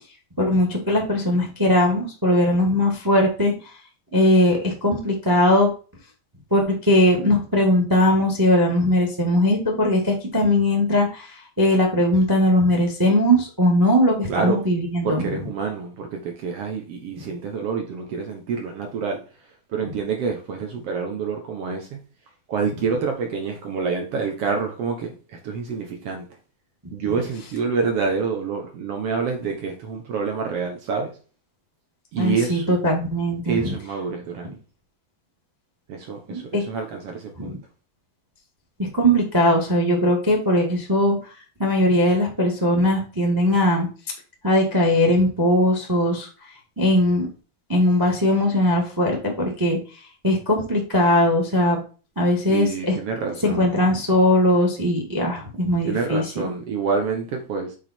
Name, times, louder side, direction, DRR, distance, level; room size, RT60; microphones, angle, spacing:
voice 1, 0.4-3.5 4.1-5.7 6.5-15.2 32.2-33.7 36.3-36.6 37.4-37.6 38.9-41.3 41.6-43.9 44.4-46.3 46.8-47.3 47.7-49.8 50.2-51.8 52.1-53.0 53.4-56.4, left 1 dB, 15° right, 0.7 m, -20 dB
voice 2, 14.3-14.7 15.0-19.2 19.7-22.0 22.5-26.3 26.9-31.1 32.1-32.7 33.4-34.6 35.9-37.6 52.5-53.6 55.8-57.8, right 5 dB, 80° right, 1.3 m, -27 dB
7.6 x 4.9 x 4.4 m
omnidirectional pair, 4.3 m